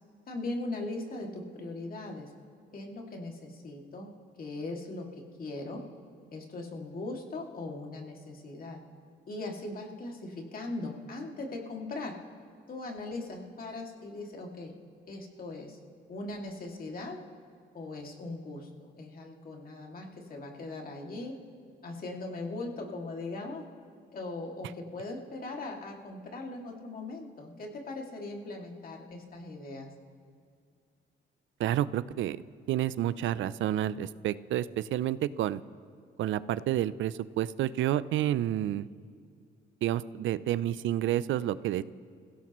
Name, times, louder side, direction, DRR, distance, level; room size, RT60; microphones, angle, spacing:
voice 1, 0.3-2.3 2.7-5.8 6.3-8.8 9.3-12.2 12.7-14.7 15.1-15.8 16.1-17.2 17.7-18.7 19.0-21.4 21.8-23.6 24.1-29.9, left 2 dB, 45° left, 0 dB, 2.3 m, -39 dB
voice 2, 31.6-32.4 32.7-35.6 36.2-38.9 39.8-41.8, right 12 dB, 75° right, 17 dB, 0.5 m, -29 dB
27.5 x 16.5 x 3.1 m, 2.2 s
cardioid pair, 90°, 20 cm